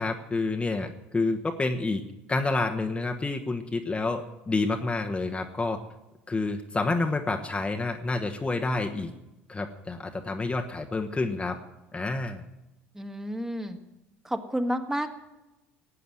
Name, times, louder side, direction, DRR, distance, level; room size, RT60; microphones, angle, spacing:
voice 1, 0.0-2.0 2.3-5.8 6.3-9.1 9.5-11.6 11.9-12.4, left 3 dB, 15° left, 4 dB, 1.2 m, -29 dB
voice 2, 12.9-13.8 14.2-15.1, equal, 10° right, 6 dB, 1.6 m, -30 dB
19.0 x 8.4 x 7.8 m, 0.99 s
figure-of-eight pair, 60°, 6 cm